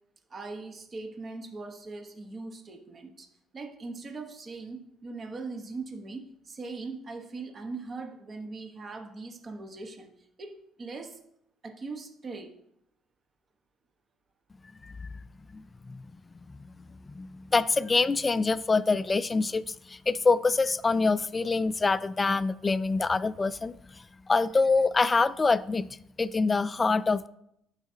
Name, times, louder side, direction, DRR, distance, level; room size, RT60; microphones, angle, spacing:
voice 1, 0.3-3.3 3.5-10.1 10.4-11.2 11.6-12.6, right 3 dB, 35° right, 4 dB, 1.1 m, -40 dB
voice 2, 15.5-16.1 16.6-16.7 17.2-23.8 24.3-25.9 26.2-27.3, left 4 dB, 25° left, 16 dB, 0.3 m, -25 dB
11.5 x 4.9 x 2.8 m, 0.76 s
supercardioid pair, 90°, 0 cm